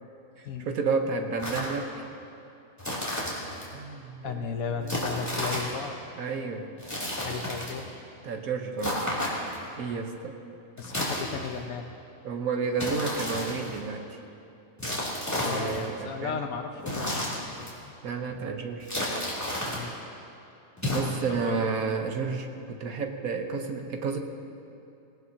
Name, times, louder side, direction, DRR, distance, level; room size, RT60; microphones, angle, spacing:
voice 1, 0.4-1.9 3.7-4.4 4.7-4.9 6.2-6.7 8.2-9.1 9.8-10.4 12.2-14.2 15.5-16.4 18.0-18.9 20.9-24.2, right 4 dB, 90° right, 4 dB, 1.5 m, -31 dB
sound 1, 1.4-1.8 2.8-3.7 4.9-5.8 6.8-7.8 8.8-9.7 10.8-11.6 12.8-13.8 14.8-15.9 16.8-17.7 18.8-19.8 20.8-21.0, left 1 dB, 10° left, 3.0 m, -32 dB
voice 2, 4.2-6.0 7.2-8.0 10.8-11.9 15.4-17.9 19.7-20.0 21.4-21.7, left 6 dB, 80° left, 5 dB, 1.3 m, -35 dB
19.0 x 18.0 x 2.9 m, 2.8 s
omnidirectional pair, 1.5 m